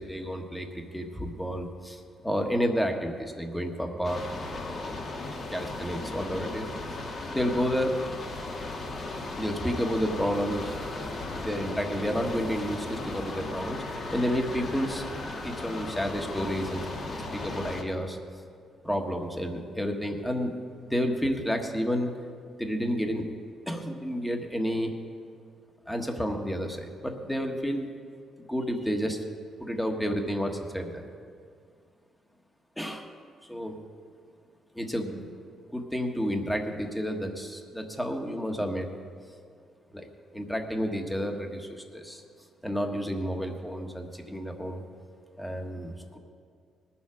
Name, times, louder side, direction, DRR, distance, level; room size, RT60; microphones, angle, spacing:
voice 1, 0.0-4.2 5.5-6.7 7.3-8.0 9.3-10.7 11.3-13.8 14.1-15.1 15.4-16.8 17.3-18.2 18.8-20.5 20.8-22.1 22.6-23.2 23.7-24.9 25.9-27.9 28.4-29.2 29.6-31.1 32.8-33.1 33.5-33.8 34.7-35.2 35.7-38.9 39.9-40.1 40.3-42.2 42.6-44.8 45.4-46.2, equal, 5° left, 3 dB, 1.4 m, -30 dB
sound 1, 4.0-17.8, left 2 dB, 50° left, 1.7 m, -36 dB
20.0 x 7.2 x 5.0 m, 2.2 s
cardioid pair, 90°, 0 cm